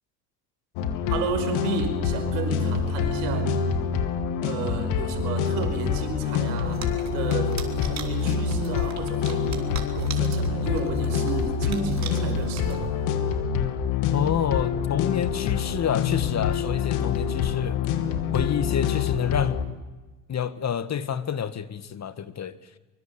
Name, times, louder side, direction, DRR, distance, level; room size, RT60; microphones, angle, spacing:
sound 1, 0.8-19.7, left 7 dB, 70° left, 2.9 m, -26 dB
voice 1, 1.1-3.9 4.4-6.8 7.1-9.7 9.9-12.9 17.3-17.5, right 6 dB, 75° right, 5.3 m, -33 dB
sound 2, 6.6-13.2, right 7 dB, 35° right, 4.5 m, -42 dB
voice 2, 14.1-17.8 18.3-19.6 20.3-22.6, left 8 dB, 35° left, 1.7 m, -28 dB
24.0 x 23.5 x 8.4 m
hypercardioid pair, 80°, 46 cm